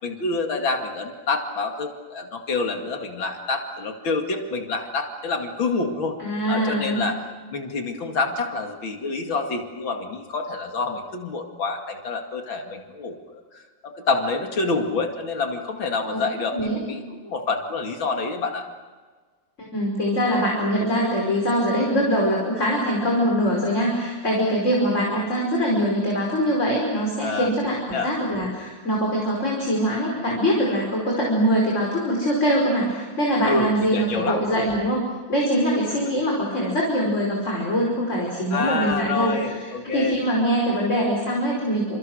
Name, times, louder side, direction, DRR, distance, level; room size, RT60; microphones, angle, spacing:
voice 1, 0.0-6.2 6.5-7.2 7.5-13.4 13.8-18.6 27.2-27.5 27.9-28.1 33.4-34.4 38.5-40.2, left 3 dB, 90° left, 3 dB, 3.1 m, -27 dB
voice 2, 6.2-7.0 16.0-16.2 16.5-16.8 19.7-35.0 35.3-42.0, equal, 35° left, -2 dB, 5.5 m, -23 dB
29.0 x 28.0 x 6.4 m, 1.4 s
omnidirectional pair, 2.1 m